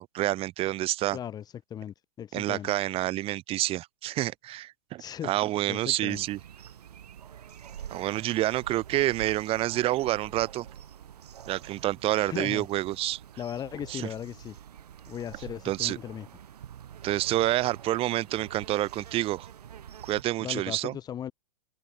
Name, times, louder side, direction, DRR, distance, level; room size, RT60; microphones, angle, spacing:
voice 1, 0.0-1.2 2.3-6.4 7.9-10.7 11.5-13.2 13.9-14.1 15.6-16.0 17.0-19.5 20.0-20.9, right 15 dB, 25° right, 2.8 m, -28 dB
voice 2, 1.1-1.4 1.7-2.7 5.0-5.3 5.7-6.2 12.2-12.7 13.4-14.6 15.1-16.3 20.4-21.3, left 9 dB, 20° left, 2.0 m, -37 dB
sound 1, 6.1-20.2, right 9 dB, 70° right, 4.0 m, -46 dB
hypercardioid pair, 130°, 21 cm